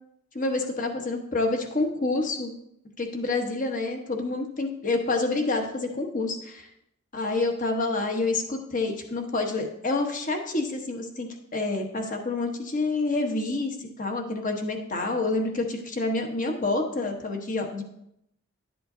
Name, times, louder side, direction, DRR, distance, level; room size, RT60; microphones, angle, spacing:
voice 1, 0.3-2.5 3.0-6.7 7.1-17.8, left 3 dB, 35° left, 3 dB, 1.1 m, -28 dB
12.0 x 7.6 x 2.7 m, 0.78 s
head